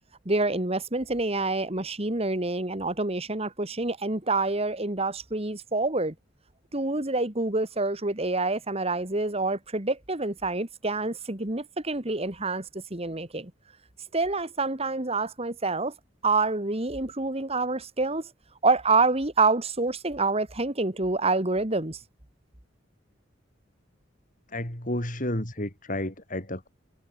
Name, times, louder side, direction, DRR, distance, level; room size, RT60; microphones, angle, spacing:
voice 1, 0.3-6.1 6.7-13.5 14.1-15.9 16.2-18.3 18.6-22.0, right 3 dB, 30° right, 2.2 m, -27 dB
voice 2, 24.5-26.7, left 1 dB, 45° left, 5.2 m, -31 dB
head